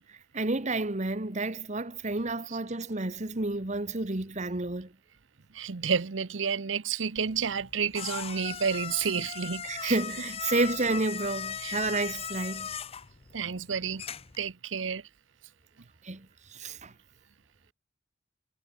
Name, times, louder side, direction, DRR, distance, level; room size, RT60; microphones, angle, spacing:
voice 1, 0.3-4.9 9.6-12.7 16.0-16.9, right 2 dB, 40° right, 1.6 m, -30 dB
voice 2, 5.5-10.0 11.6-11.8 13.3-14.0 14.4-15.0, right 6 dB, 90° right, 0.8 m, -30 dB
sound 1, 7.2-14.4, left 7 dB, 30° left, 0.7 m, -38 dB
head